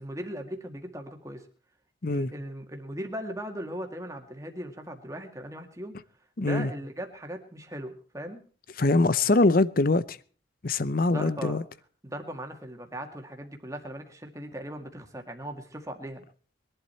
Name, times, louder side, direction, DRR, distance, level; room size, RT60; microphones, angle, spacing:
voice 1, 0.0-1.5 2.1-5.9 6.4-8.4 11.1-11.6 12.0-16.2, right 1 dB, 15° right, 2.0 m, -38 dB
voice 2, 6.4-6.7 8.8-10.2 10.6-11.6, left 2 dB, 45° left, 0.7 m, -23 dB
21.5 x 11.5 x 4.4 m
head